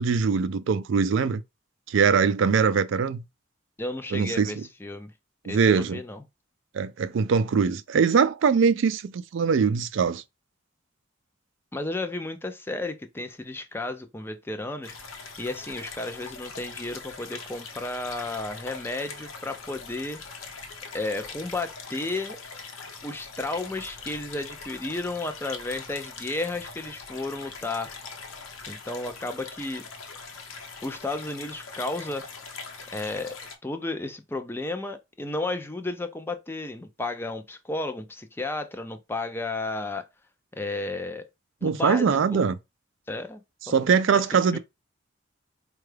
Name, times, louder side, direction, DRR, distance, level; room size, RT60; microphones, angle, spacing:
voice 1, 0.0-1.4 1.9-3.2 4.1-4.5 5.5-6.0 6.7-10.2 41.6-42.6 43.7-44.6, right 6 dB, 70° right, 0.4 m, -22 dB
voice 2, 3.8-5.1 5.5-6.2 11.7-20.2 20.9-22.4 23.0-28.0 28.7-29.9 30.8-32.3 32.9-40.1 40.5-41.3 41.6-42.5 43.1-43.4 43.7-43.9 44.5-44.6, left 2 dB, 10° left, 0.4 m, -33 dB
sound 1, 14.8-33.6, left 4 dB, 90° left, 0.8 m, -42 dB
4.5 x 2.3 x 3.2 m
head